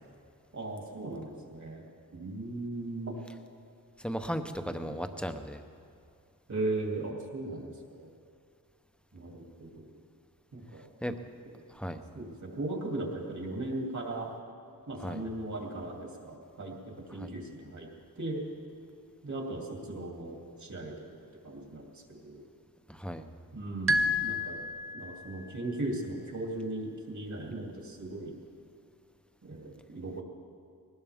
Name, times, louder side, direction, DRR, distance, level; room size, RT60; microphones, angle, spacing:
voice 1, 0.5-1.8 2.1-3.2 4.9-5.0 6.5-8.1 9.1-9.9 10.5-10.9 12.1-14.3 14.9-17.9 18.2-18.4 19.2-21.0 21.4-22.4 23.5-24.6 24.9-28.4 29.4-30.2, right 2 dB, 50° right, -1 dB, 3.0 m, -37 dB
voice 2, 4.0-5.6 11.0-11.1 11.7-12.0 15.0-15.2 17.2-17.3 22.9-23.2, equal, 5° left, 7 dB, 0.8 m, -36 dB
sound 1, 23.9-25.4, left 1 dB, 35° right, 0.8 m, -30 dB
21.0 x 19.0 x 3.6 m, 2.3 s
wide cardioid pair, 130°, 36 cm